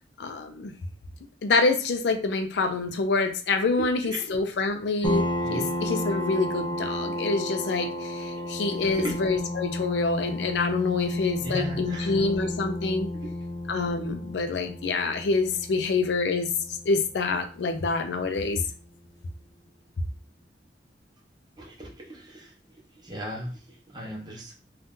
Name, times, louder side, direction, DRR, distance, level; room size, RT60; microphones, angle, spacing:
voice 1, 0.2-0.7 1.4-5.2 5.5-13.1 13.7-16.5 16.9-18.6, left 3 dB, 70° left, 7 dB, 0.4 m, -26 dB
voice 2, 3.8-4.3 5.4-5.7 9.0-9.1 11.4-12.3 13.1-13.3 21.6-22.5 22.9-24.5, right 1 dB, 25° right, -2 dB, 0.8 m, -37 dB
sound 1, 5.0-18.3, left 1 dB, 25° left, 0.6 m, -33 dB
2.6 x 2.3 x 3.6 m, 0.37 s
head